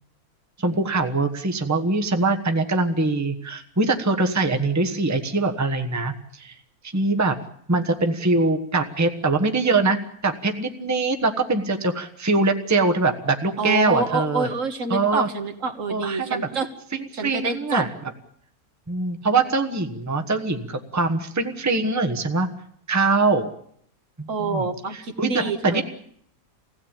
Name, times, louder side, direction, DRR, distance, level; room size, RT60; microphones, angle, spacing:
voice 1, 0.6-6.6 6.8-7.4 7.7-14.5 14.9-15.3 15.9-16.5 16.9-17.9 18.9-22.5 22.9-23.5 24.2-24.7 25.2-25.8, right 3 dB, 10° right, 5 dB, 1.2 m, -23 dB
voice 2, 13.6-16.7 17.1-17.8 24.3-25.8, right 4 dB, 60° right, 6 dB, 1.8 m, -27 dB
23.0 x 16.5 x 8.9 m, 0.69 s
omnidirectional pair, 1.5 m